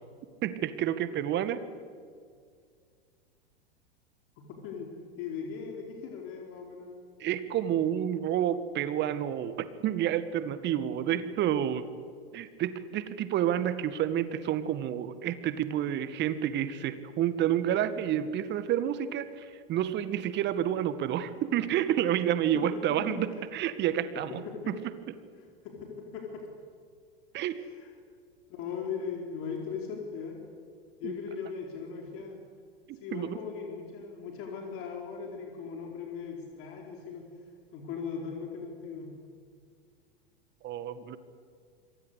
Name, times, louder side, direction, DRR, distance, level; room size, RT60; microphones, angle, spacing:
voice 1, 0.4-1.6 7.2-11.9 12.3-24.4 24.7-24.8 27.3-27.6 31.0-31.1 32.9-33.4 40.6-41.2, right 10 dB, 35° right, 13 dB, 1.9 m, -29 dB
voice 2, 4.4-4.9 5.2-7.0 22.9-23.2 24.1-24.7 25.6-26.4 27.6-27.9 28.5-30.4 31.0-32.4 33.0-37.3 37.7-39.1, left 6 dB, 45° left, 1 dB, 4.7 m, -39 dB
27.5 x 23.5 x 8.4 m, 2.1 s
figure-of-eight pair, 95°, 30 cm